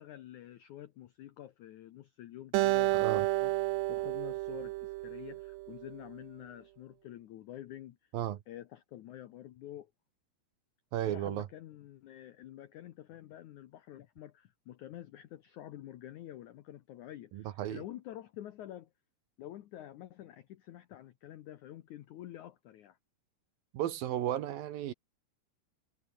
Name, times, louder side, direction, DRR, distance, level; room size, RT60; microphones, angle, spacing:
voice 1, 0.0-3.5 3.9-8.0 8.5-9.9 11.0-18.9 19.4-23.0, left 12 dB, 85° left, 1.7 m, -48 dB
Acoustic guitar, 2.5-5.9, right 20 dB, 85° right, 2.9 m, -31 dB
voice 2, 2.9-3.3 8.1-8.4 10.9-11.5 17.3-17.8 23.7-24.9, right 12 dB, 70° right, 2.6 m, -34 dB
omnidirectional pair, 5.0 m